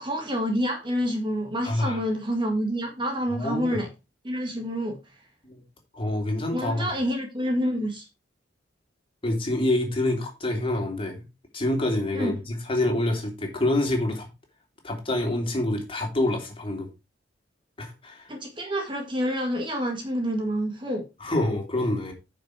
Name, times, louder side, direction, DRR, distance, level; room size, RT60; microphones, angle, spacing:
voice 1, 0.0-3.9 4.2-5.0 6.5-8.1 12.1-12.3 18.3-21.0, equal, 25° right, 1.7 m, -28 dB
voice 2, 1.6-2.0 3.3-3.8 5.4-5.6 5.9-6.9 9.2-11.2 11.5-14.3 14.8-16.9 17.8-18.3 21.2-22.1, left 1 dB, 30° left, 3.0 m, -26 dB
9.8 x 5.6 x 4.7 m
head